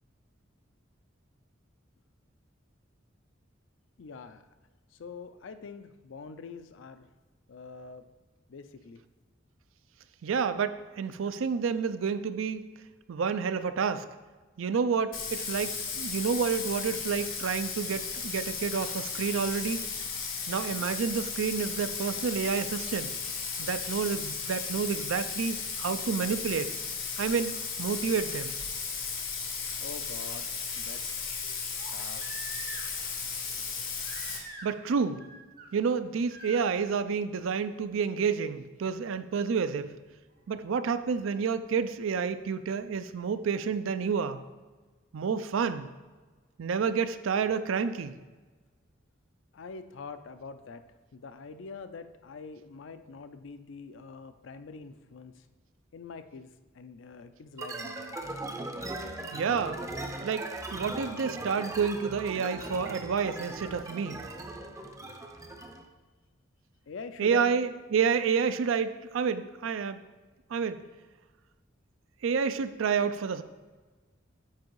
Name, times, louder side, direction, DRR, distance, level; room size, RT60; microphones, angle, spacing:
voice 1, 4.0-4.4 5.0-7.1 7.5-8.1 8.5-9.0 29.8-31.2 31.9-32.2 49.5-50.8 51.1-55.4 55.9-56.5 56.7-58.2 66.9-67.5, left 4 dB, 70° left, 11 dB, 0.4 m, -44 dB
voice 2, 10.2-12.6 13.1-14.1 14.6-19.9 20.5-23.1 23.6-26.7 27.2-28.5 34.6-35.2 35.7-39.9 40.5-44.4 45.1-45.9 46.6-48.2 59.3-59.8 60.2-64.2 67.2-70.0 70.5-70.8 72.2-73.4, right 6 dB, 80° right, 12 dB, 0.4 m, -29 dB
Bathtub (filling or washing), 15.1-34.4, left 5 dB, 85° left, 1.3 m, -35 dB
Crying sobbing, 29.1-29.2 31.8-33.1 34.0-34.9 35.1-35.7 36.3-36.6 38.2-38.3, right 3 dB, 50° right, 1.0 m, -45 dB
sound 1, 57.6-65.9, right 2 dB, 15° right, 0.5 m, -39 dB
7.6 x 4.7 x 4.6 m, 1.3 s
head